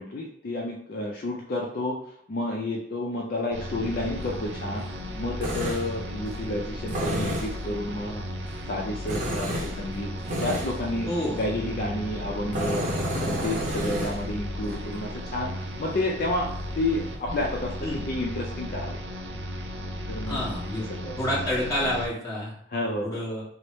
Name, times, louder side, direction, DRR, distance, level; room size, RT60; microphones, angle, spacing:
voice 1, 0.0-2.0 2.3-4.8 5.2-8.2 8.7-10.1 10.4-11.1 11.3-12.9 13.2-16.5 16.8-19.0 20.1-20.4 21.0-21.2 22.7-23.2, left 1 dB, 55° left, -2 dB, 0.4 m, -30 dB
sound 1, 3.5-22.1, equal, 80° right, 0.5 m, -35 dB
Tools, 3.8-17.9, equal, 45° right, 0.7 m, -34 dB
voice 2, 11.1-11.4 17.8-18.0 20.3-20.8 21.2-22.5 23.0-23.4, left 1 dB, 20° left, -7 dB, 1.2 m, -28 dB
3.1 x 2.0 x 4.1 m, 0.67 s
head